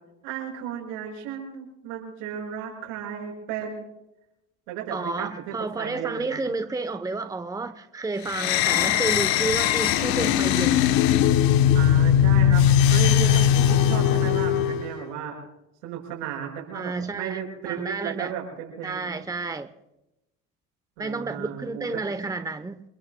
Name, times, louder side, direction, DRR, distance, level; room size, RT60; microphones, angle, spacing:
voice 1, 0.2-3.8 4.7-6.4 11.7-12.6 12.9-15.3 15.8-19.1 21.0-22.0, right 8 dB, 90° right, 5.9 m, -34 dB
voice 2, 4.9-10.9 16.7-17.4 17.6-18.3 18.8-19.7 21.0-22.8, right 3 dB, 10° right, 0.9 m, -31 dB
sound 1, 8.3-14.9, left 10 dB, 75° left, 1.0 m, -20 dB
28.5 x 21.0 x 2.2 m
supercardioid pair, 75°, 35 cm